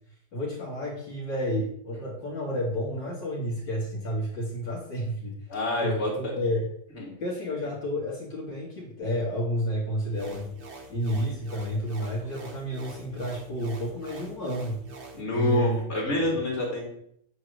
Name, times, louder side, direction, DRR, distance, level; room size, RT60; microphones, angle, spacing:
voice 1, 0.3-5.4 5.8-6.7 7.2-10.5 10.9-14.8 15.3-15.8 16.1-16.4, equal, 70° left, -4 dB, 2.2 m, -30 dB
voice 2, 5.5-6.4 6.9-7.1 15.1-16.9, left 1 dB, 35° left, -3 dB, 2.5 m, -27 dB
sound 1, 10.1-15.2, right 3 dB, 40° right, 1.1 m, -45 dB
8.5 x 3.1 x 6.3 m, 0.69 s
omnidirectional pair, 2.1 m